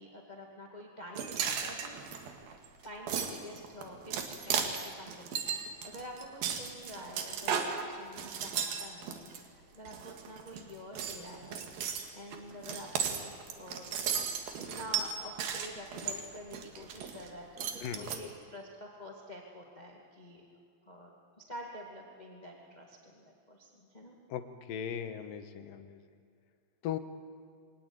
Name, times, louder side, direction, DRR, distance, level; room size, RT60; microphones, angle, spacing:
voice 1, 0.0-2.0 2.8-11.7 12.1-13.9 14.7-20.4 20.8-24.1, equal, 15° left, -1 dB, 1.8 m, -48 dB
sound 1, 1.2-9.4 9.9-10.6 10.9-17.3 17.6-18.2, right 7 dB, 80° right, 3.6 m, -35 dB
voice 2, 24.3-26.0 26.8-27.0, left 9 dB, 75° left, 9 dB, 2.7 m, -38 dB
24.0 x 19.0 x 9.0 m, 2.3 s
omnidirectional pair, 4.2 m